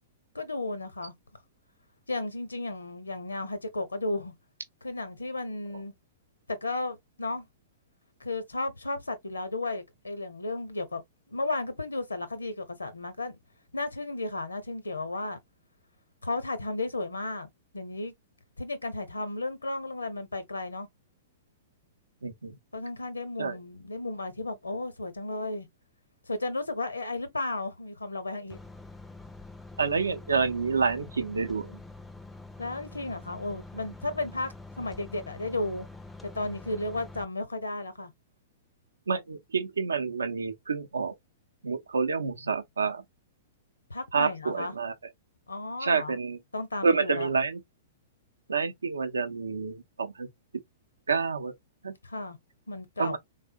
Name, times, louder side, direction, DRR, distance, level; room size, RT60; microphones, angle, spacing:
voice 1, 0.3-1.1 2.1-4.3 4.8-5.9 6.5-7.5 8.2-11.0 11.3-13.4 13.7-15.4 16.2-18.1 18.6-20.9 22.7-25.7 26.3-28.6 32.6-35.9 36.2-38.1 43.9-44.7 45.5-46.2 46.5-47.3 52.0-52.4 52.7-53.2, left 2 dB, 80° left, 0.7 m, -34 dB
voice 2, 22.2-22.6 23.4-23.6 29.8-31.8 39.1-41.1 41.6-43.0 44.1-44.9 45.8-46.4 46.8-47.6 48.5-50.3 51.1-51.5 51.8-51.9 53.0-53.2, right 5 dB, 75° right, 0.5 m, -28 dB
sound 1, 28.5-37.2, left 2 dB, 5° left, 0.4 m, -46 dB
3.6 x 2.0 x 2.5 m
figure-of-eight pair, 105°, 0 cm